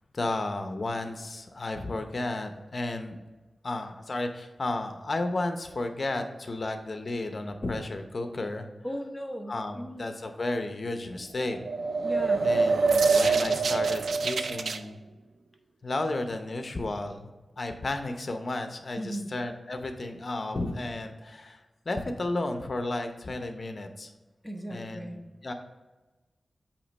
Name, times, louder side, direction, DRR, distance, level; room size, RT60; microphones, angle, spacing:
voice 1, 0.1-3.2 3.6-8.7 9.5-11.6 12.4-15.0 15.8-17.3 17.6-21.6 21.9-24.1 24.7-25.5, left 2 dB, 50° left, 6 dB, 0.7 m, -33 dB
voice 2, 8.8-10.1 12.0-12.5 19.0-19.3 24.4-25.2, equal, ahead, 2 dB, 0.9 m, -37 dB
sound 1, 11.5-14.8, right 4 dB, 85° right, 0.4 m, -25 dB
8.5 x 2.9 x 5.3 m, 1.2 s
wide cardioid pair, 100°, 0 cm